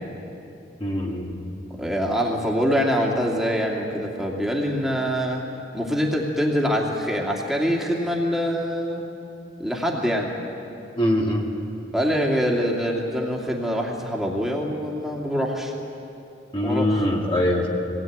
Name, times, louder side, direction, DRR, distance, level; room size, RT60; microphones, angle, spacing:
voice 1, 0.8-1.5 11.0-11.5 16.5-17.7, left 1 dB, 30° left, -1 dB, 2.1 m, -23 dB
voice 2, 1.7-5.4 5.7-9.0 9.6-10.3 11.9-15.7 16.6-16.9, equal, ahead, -2 dB, 2.4 m, -24 dB
22.0 x 18.0 x 9.4 m, 2.8 s
head